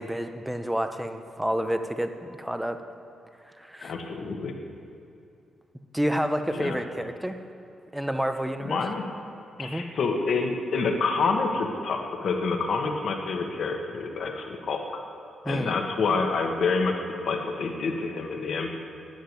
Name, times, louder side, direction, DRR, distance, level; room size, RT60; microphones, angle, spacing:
voice 1, 0.0-2.8 3.6-3.9 5.9-7.4 7.9-8.8 9.6-9.8 15.4-15.8, equal, 5° right, 8 dB, 0.6 m, -29 dB
voice 2, 3.8-4.5 6.6-6.7 8.6-9.0 9.6-14.8 15.4-17.0 17.2-18.9, left 4 dB, 55° left, 3 dB, 1.5 m, -27 dB
10.5 x 8.0 x 9.4 m, 2.6 s
wide cardioid pair, 155°, 0 cm